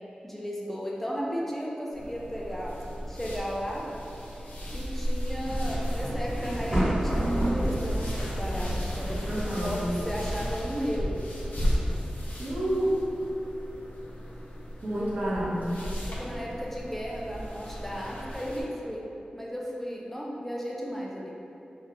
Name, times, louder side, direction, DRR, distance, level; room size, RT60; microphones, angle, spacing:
voice 1, 0.2-2.8 3.0-3.9 4.3-4.4 4.7-12.0 16.0-19.1 19.3-21.4, equal, 10° left, -3 dB, 0.4 m, -35 dB
sound 1, 1.9-18.6, equal, 70° left, 0.5 m, -34 dB
sound 2, 5.4-10.4, right 1 dB, 25° right, 1.2 m, -31 dB
voice 2, 9.3-9.8 12.4-12.9 14.8-15.8, right 1 dB, 65° right, -8 dB, 0.8 m, -29 dB
3.2 x 2.3 x 2.8 m, 2.8 s
wide cardioid pair, 60°, 3 cm